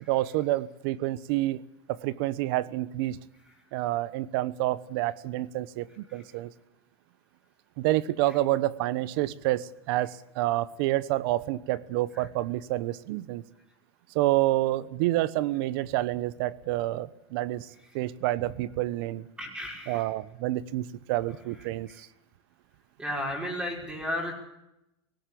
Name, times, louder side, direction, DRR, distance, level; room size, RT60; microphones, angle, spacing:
voice 1, 0.1-1.6 1.9-3.2 3.7-6.5 7.8-13.4 14.1-17.7 17.9-19.2 19.9-22.1, right 16 dB, 65° right, 19 dB, 1.1 m, -28 dB
voice 2, 19.4-20.1 23.0-24.3, left 1 dB, 5° right, 1 dB, 5.9 m, -33 dB
18.5 x 17.0 x 8.5 m, 0.86 s
supercardioid pair, 140°, 13 cm